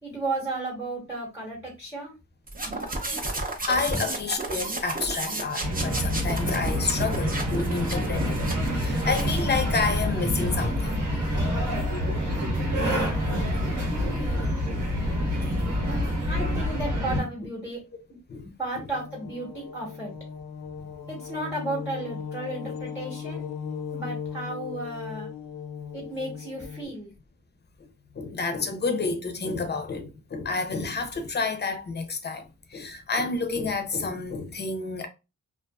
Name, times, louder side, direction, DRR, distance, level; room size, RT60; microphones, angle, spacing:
voice 1, 0.0-2.1 3.9-4.0 16.3-17.8 18.6-20.1 21.1-23.4 23.9-25.3 25.9-27.1, right 2 dB, 5° right, 0.9 m, -34 dB
sound 1, 2.5-9.5, right 2 dB, 25° right, 0.6 m, -32 dB
voice 2, 3.7-8.4 8.7-11.2 12.6-15.2 15.6-15.7 16.0-16.6 18.3-18.5 28.1-35.1, left 4 dB, 35° left, 0.5 m, -30 dB
sound 2, 5.6-17.2, equal, 65° right, 1.1 m, -27 dB
sound 3, 18.9-26.9, left 7 dB, 80° left, 0.5 m, -37 dB
2.5 x 2.4 x 2.2 m
wide cardioid pair, 105°, 32 cm